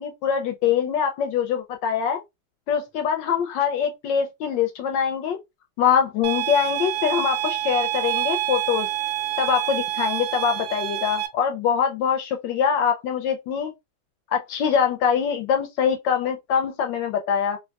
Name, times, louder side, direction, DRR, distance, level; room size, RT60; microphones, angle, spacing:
voice 1, 0.0-2.2 2.7-5.4 5.8-8.9 9.4-13.7 14.3-17.6, left 7 dB, 75° left, 1.1 m, -23 dB
sound 1, 6.2-11.3, right 14 dB, 80° right, 1.4 m, -27 dB
3.5 x 2.5 x 2.3 m
omnidirectional pair, 2.3 m